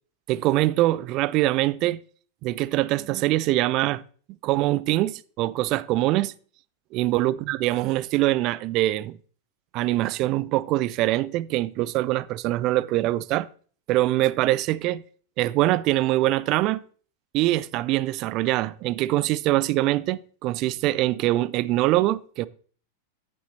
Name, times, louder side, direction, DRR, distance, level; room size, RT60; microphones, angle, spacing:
voice 1, 0.3-2.0 2.4-4.0 4.4-6.3 6.9-9.2 9.7-13.5 13.9-15.0 15.4-16.8 17.3-22.5, right 16 dB, 40° right, 0.3 m, -23 dB
8.5 x 8.4 x 2.8 m
figure-of-eight pair, 90°, 0 cm